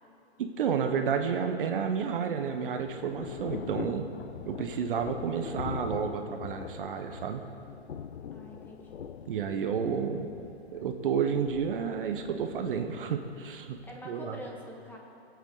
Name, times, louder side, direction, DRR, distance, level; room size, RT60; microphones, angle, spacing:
voice 1, 0.4-4.1 4.5-7.4 9.3-10.3 10.7-13.8 14.0-14.4, right 7 dB, 55° right, 6 dB, 1.1 m, -31 dB
Thunder / Rain, 2.0-14.0, left 8 dB, 80° left, 0.7 m, -43 dB
voice 2, 8.3-9.0 13.8-15.0, equal, 5° left, -2 dB, 1.5 m, -45 dB
22.0 x 8.3 x 4.8 m, 2.6 s
hypercardioid pair, 135°, 33 cm